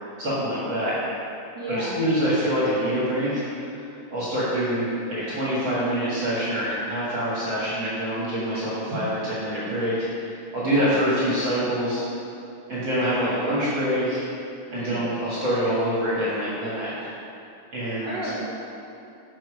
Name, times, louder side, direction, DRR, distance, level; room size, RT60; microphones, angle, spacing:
voice 1, 0.2-0.9 1.7-3.8 4.1-12.0 12.7-14.2 14.7-16.9 17.7-18.2, equal, 40° right, -9 dB, 2.2 m, -25 dB
voice 2, 1.5-2.0 10.6-11.0 14.7-15.1 18.0-18.4, right 1 dB, 75° right, -7 dB, 1.0 m, -33 dB
7.7 x 6.0 x 4.9 m, 2.6 s
omnidirectional pair, 3.6 m